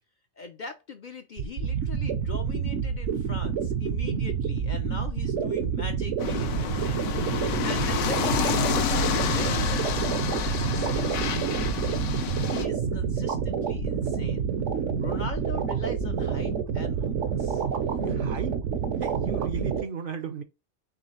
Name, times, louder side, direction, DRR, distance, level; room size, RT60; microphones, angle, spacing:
voice 1, 0.4-7.2 7.6-9.0 9.3-12.1 12.5-14.5 15.0-17.6, left 4 dB, 55° left, 0.6 m, -41 dB
sound 1, 1.4-19.8, right 7 dB, 75° right, 1.1 m, -28 dB
sound 2, 6.2-12.6, left 7 dB, 80° left, 1.0 m, -29 dB
voice 2, 18.0-18.6 19.0-20.4, right 6 dB, 55° right, 0.6 m, -35 dB
4.8 x 3.1 x 3.1 m
omnidirectional pair, 1.2 m